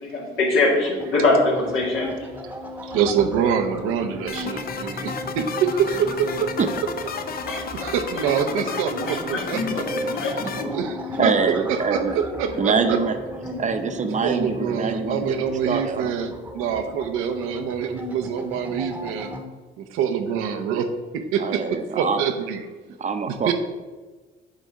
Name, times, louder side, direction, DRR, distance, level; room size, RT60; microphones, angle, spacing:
voice 1, 0.0-2.1 7.4-8.3 8.6-10.8 11.1-11.3, left 2 dB, 75° left, -2 dB, 1.9 m, -24 dB
sound 1, 1.0-19.5, left 1 dB, 10° right, 0.9 m, -36 dB
voice 2, 2.8-6.5 7.7-9.9 10.7-11.3 11.7-13.0 14.2-19.3 19.8-22.7 23.3-23.5, right 7 dB, 90° right, 7 dB, 0.7 m, -25 dB
sound 2, 4.3-10.6, left 6 dB, 45° left, 0.6 m, -33 dB
voice 3, 11.2-12.2 12.6-13.2 13.6-16.1 21.4-22.2 23.0-23.5, right 5 dB, 35° right, 8 dB, 0.7 m, -24 dB
6.5 x 4.1 x 4.7 m, 1.3 s
supercardioid pair, 70°, 21 cm